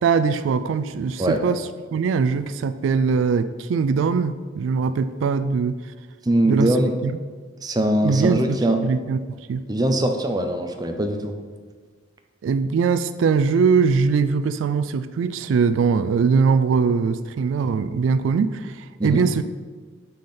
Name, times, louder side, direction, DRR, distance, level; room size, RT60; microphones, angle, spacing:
voice 1, 0.0-5.7 6.5-6.8 7.0-7.2 8.0-9.6 12.4-19.4, right 5 dB, 85° right, 12 dB, 0.3 m, -21 dB
voice 2, 6.3-6.9 7.6-8.8 9.7-11.3 19.0-19.2, right 1 dB, 20° right, 5 dB, 0.5 m, -21 dB
6.2 x 4.3 x 5.6 m, 1.5 s
head